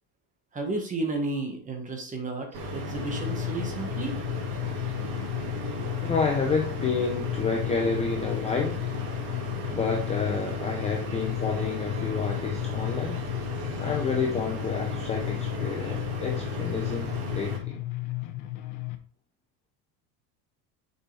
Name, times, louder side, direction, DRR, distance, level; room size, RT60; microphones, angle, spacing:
voice 1, 0.5-4.2, right 3 dB, 20° right, 1.2 m, -32 dB
sound 1, 2.5-17.6, left 1 dB, 65° right, 2.3 m, -35 dB
sound 2, 3.0-19.0, left 18 dB, 90° left, 1.0 m, -34 dB
voice 2, 6.0-8.8 9.7-13.3 13.8-17.9, left 4 dB, 15° left, 0.5 m, -29 dB
7.0 x 5.6 x 3.2 m
cardioid pair, 175°, 43 cm